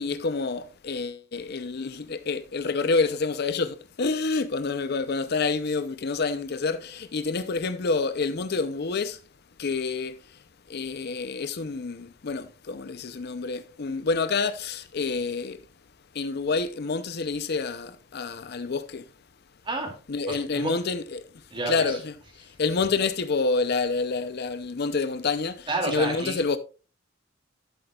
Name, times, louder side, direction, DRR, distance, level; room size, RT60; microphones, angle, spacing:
voice 1, 0.0-9.2 9.6-10.4 10.7-15.6 16.1-19.1 20.1-21.3 21.7-26.6, left 4 dB, 50° left, 0.5 m, -28 dB
voice 2, 20.3-20.7 21.5-22.0 25.7-26.4, right 2 dB, 25° right, 2.4 m, -30 dB
12.0 x 7.9 x 2.3 m
head